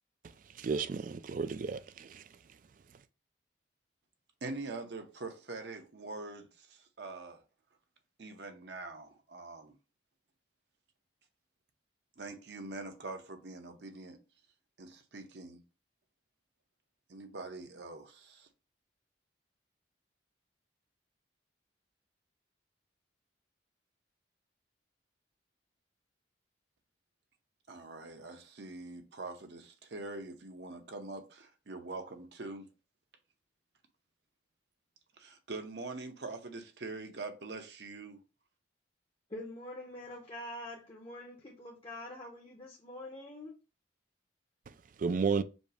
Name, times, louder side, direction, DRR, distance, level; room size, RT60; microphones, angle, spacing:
voice 1, 0.6-2.2 45.0-45.4, right 5 dB, 45° right, 0.3 m, -32 dB
voice 2, 4.4-7.4 8.2-9.7 12.2-14.2 14.8-15.6 17.1-18.5 27.7-32.6 35.2-38.2, right 3 dB, 60° right, 0.8 m, -44 dB
voice 3, 39.3-43.6, left 1 dB, 30° left, 0.7 m, -45 dB
5.2 x 2.0 x 4.8 m
head